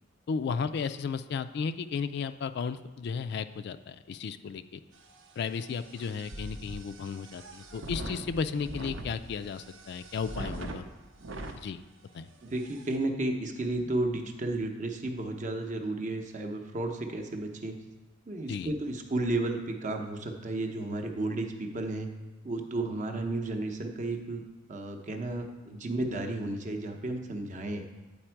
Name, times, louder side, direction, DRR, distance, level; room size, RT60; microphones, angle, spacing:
voice 1, 0.3-4.8 5.4-10.8 11.6-11.8 12.1-12.3 18.5-18.7, left 5 dB, 60° left, 11 dB, 0.3 m, -34 dB
sound 1, 4.9-11.6 12.2-12.3 12.5-13.0, right 1 dB, 80° right, 0.7 m, -42 dB
voice 2, 12.4-17.8 18.3-22.1 22.4-24.4 24.7-27.8, right 2 dB, 40° right, 4 dB, 0.7 m, -33 dB
8.7 x 4.3 x 4.5 m, 1.2 s
head